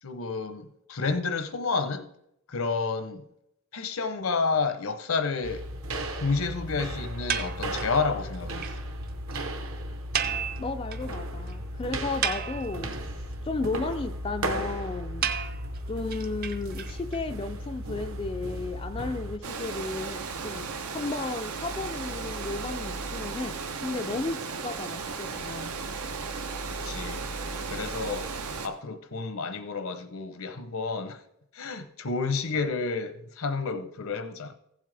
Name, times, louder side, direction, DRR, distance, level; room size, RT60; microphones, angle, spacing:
voice 1, 0.0-2.1 2.5-3.2 3.7-5.7 6.2-8.7 26.8-27.2 27.7-28.3 28.6-31.2 31.5-34.5, left 4 dB, 70° left, 0.8 m, -30 dB
sound 1, 5.4-19.4, right 1 dB, 65° right, 1.0 m, -35 dB
sound 2, 7.3-8.0 8.3-8.4 8.6-8.7 9.0-9.1 9.3-9.4 10.1-11.1 11.5-11.6 12.0-13.0 15.2-17.2, right 8 dB, 40° right, 0.6 m, -32 dB
voice 2, 10.6-13.2 13.4-15.3 15.9-23.6 23.8-25.8, left 3 dB, 25° left, 0.3 m, -34 dB
Water, 19.4-28.7, right 4 dB, 90° right, 0.9 m, -35 dB
15.0 x 7.5 x 3.4 m
head